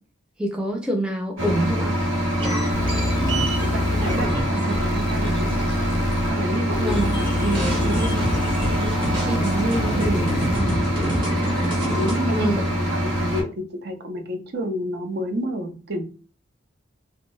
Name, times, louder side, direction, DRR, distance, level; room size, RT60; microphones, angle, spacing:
voice 1, 0.4-2.0 6.8-7.1 9.3-10.0 10.5-11.0 12.3-12.7, right 1 dB, 5° right, 0.4 m, -26 dB
sound 1, 1.4-13.4, equal, 80° right, 1.2 m, -24 dB
sound 2, 2.4-6.5 6.7-12.2, right 1 dB, 25° right, 0.8 m, -29 dB
sound 3, 2.7-10.7, left 3 dB, 75° left, 0.3 m, -30 dB
voice 2, 3.6-5.7 6.3-8.2 8.8-9.5 9.8-10.3 11.9-16.0, right 1 dB, 55° right, 0.6 m, -29 dB
2.6 x 2.1 x 3.1 m
head